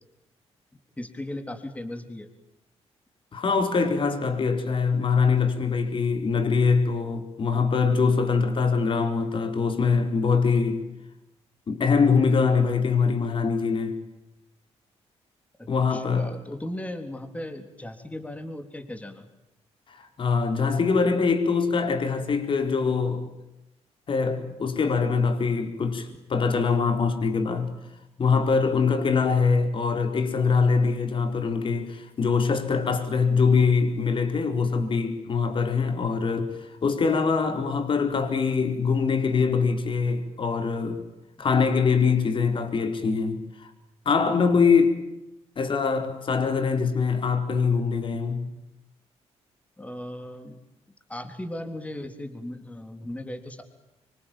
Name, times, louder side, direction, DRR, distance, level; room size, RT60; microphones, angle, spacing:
voice 1, 1.0-2.3 15.6-19.3 49.8-50.6 51.1-53.6, left 1 dB, 10° left, 3.7 m, -37 dB
voice 2, 3.3-10.8 11.7-14.0 15.7-16.3 19.9-23.3 24.1-27.7 28.2-41.0 41.4-43.7 44.0-45.0 45.6-48.5, left 5 dB, 50° left, 4.5 m, -23 dB
26.0 x 25.0 x 9.2 m
cardioid pair, 100°, 11 cm